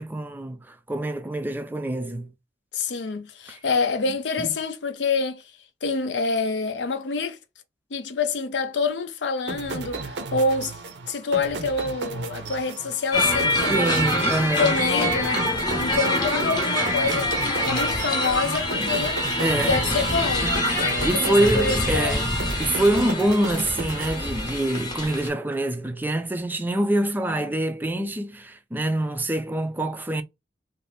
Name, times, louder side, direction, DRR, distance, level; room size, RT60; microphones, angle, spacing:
voice 1, 0.0-2.3 3.5-3.6 4.4-4.5 13.7-14.8 18.4-18.9 19.4-19.8 20.4-22.3 22.6-30.2, right 1 dB, 10° right, 0.4 m, -25 dB
voice 2, 2.7-5.4 5.8-7.4 7.9-10.7 11.1-14.1 14.6-15.5 15.8-17.3 17.6-19.2 19.6-22.3, left 4 dB, 80° left, 0.6 m, -27 dB
sound 1, 9.5-24.8, right 3 dB, 75° right, 0.6 m, -35 dB
sound 2, 13.1-25.3, left 1 dB, 25° left, 0.8 m, -25 dB
2.6 x 2.5 x 3.2 m
head